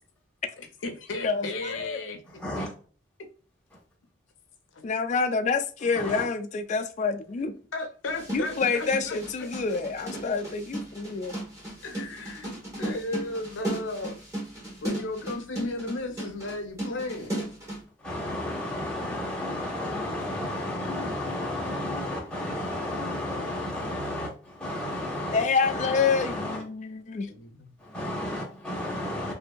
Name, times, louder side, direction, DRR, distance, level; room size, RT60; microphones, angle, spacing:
voice 1, 0.6-2.2 4.7-4.8 7.7-9.8 11.8-12.5 12.8-14.2 14.8-17.4 20.3-20.4 25.0-25.1 27.3-27.6, left 2 dB, 85° left, 0.5 m, -35 dB
voice 2, 1.2-2.0 4.8-7.5 8.3-11.4 25.3-27.3, left 4 dB, 40° left, 0.3 m, -27 dB
voice 3, 2.3-2.7 6.0-6.3 18.0-26.6 27.8-29.3, left 1 dB, 5° left, 0.9 m, -32 dB
sound 1, 8.1-17.8, right 1 dB, 15° right, 1.0 m, -36 dB
2.7 x 2.6 x 2.2 m
head